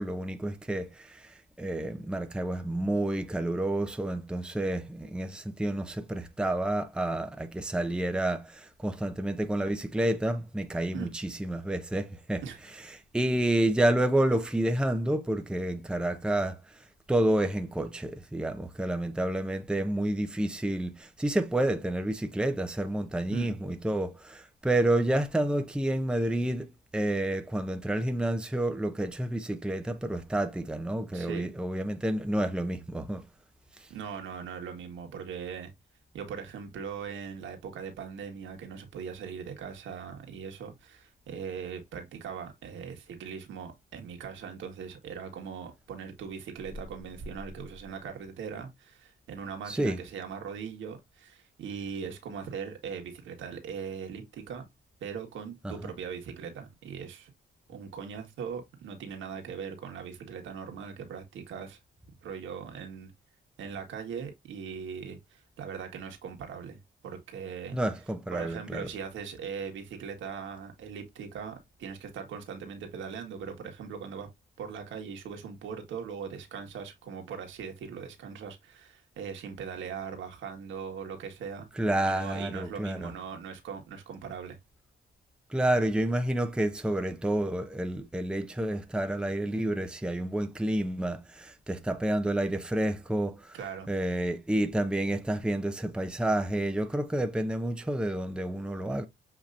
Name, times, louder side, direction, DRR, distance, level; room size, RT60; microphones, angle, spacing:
voice 1, 0.0-12.4 13.1-16.8 17.1-33.3 33.8-33.9 49.7-50.0 55.6-55.7 67.7-68.8 81.8-83.1 85.5-93.6 93.9-99.1, right 1 dB, 5° right, 0.7 m, -29 dB
voice 2, 31.1-31.5 33.9-35.7 36.1-54.6 55.0-57.3 57.7-61.8 62.2-63.1 63.6-67.8 68.3-74.3 74.6-81.7 82.0-84.6 93.5-93.9, right 6 dB, 80° right, 1.6 m, -40 dB
7.1 x 3.0 x 2.5 m
cardioid pair, 90°, 20 cm